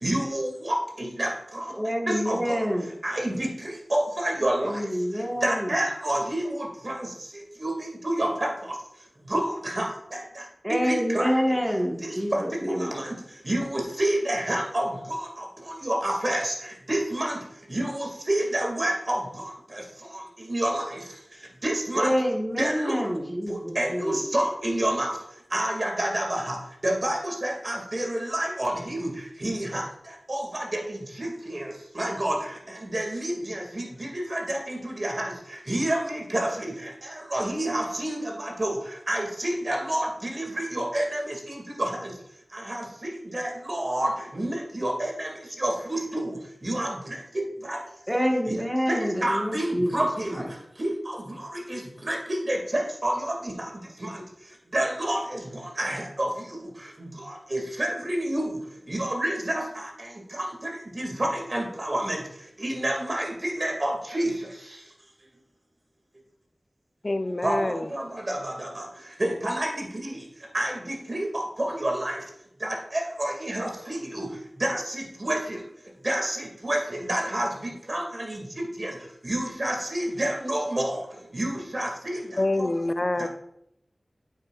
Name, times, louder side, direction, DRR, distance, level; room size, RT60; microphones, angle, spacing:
voice 1, 0.0-1.6 2.1-2.5 3.0-3.5 3.9-4.7 5.4-7.1 7.6-7.7 8.0-8.5 9.3-10.2 10.8-11.3 12.0-12.1 12.8-13.1 13.4-14.9 15.8-16.5 16.9-17.4 17.7-19.2 20.5-21.0 21.6-22.1 22.6-23.1 23.5-25.1 25.5-26.6 26.8-29.1 29.4-29.8 30.3-31.7 31.9-32.4 32.8-35.3 35.7-36.7 37.3-38.8 39.1-42.1 42.5-45.3 45.6-46.4 46.6-47.0 47.7-47.8 48.5-48.6 48.9-50.4 50.8-51.2 51.5-53.7 54.0-54.1 54.7-55.4 55.8-56.3 57.5-58.5 58.9-59.9 60.3-60.5 61.0-62.2 62.6-64.3 67.4-68.8 69.2-70.2 70.5-72.2 72.6-74.3 74.6-75.6 76.0-78.9 79.2-81.0 81.3-82.2 82.6-82.7 83.2-83.3, right 1 dB, 50° right, 2.2 m, -28 dB
voice 2, 1.7-2.9 4.6-5.8 10.6-12.9 21.9-24.2 48.1-50.1 50.3-50.5, equal, 5° right, 1.4 m, -27 dB
voice 3, 67.0-67.9 82.4-83.3, left 2 dB, 45° left, 0.5 m, -26 dB
8.9 x 8.3 x 2.4 m
wide cardioid pair, 55°, 0 cm